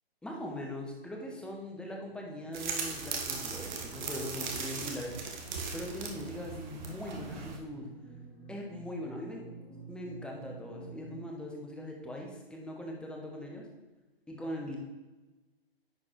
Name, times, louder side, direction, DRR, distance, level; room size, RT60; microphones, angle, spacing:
voice 1, 0.2-5.1 5.7-7.9 8.5-9.4 9.9-13.7 14.3-14.8, left 1 dB, 5° left, 0 dB, 0.9 m, -41 dB
sound 1, 1.5-11.2, right 3 dB, 50° left, 2.4 m, -51 dB
sound 2, 2.5-7.6, right 4 dB, 45° right, 1.4 m, -38 dB
10.0 x 4.2 x 4.6 m, 1.1 s
figure-of-eight pair, 130°, 31 cm